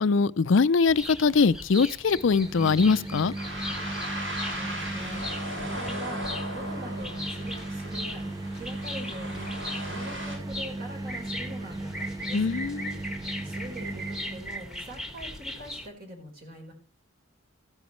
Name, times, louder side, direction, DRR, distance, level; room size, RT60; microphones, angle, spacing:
voice 1, 0.0-3.3 12.3-12.9, left 4 dB, 65° left, 0.5 m, -22 dB
sound 1, 0.8-15.9, left 1 dB, 5° right, 1.5 m, -39 dB
sound 2, 2.1-14.7, right 2 dB, 20° right, 0.5 m, -37 dB
sound 3, 3.4-10.4, equal, 75° right, 7.1 m, -37 dB
voice 2, 4.5-12.4 13.4-16.7, right 1 dB, 45° right, 4.5 m, -44 dB
15.0 x 10.5 x 3.1 m
head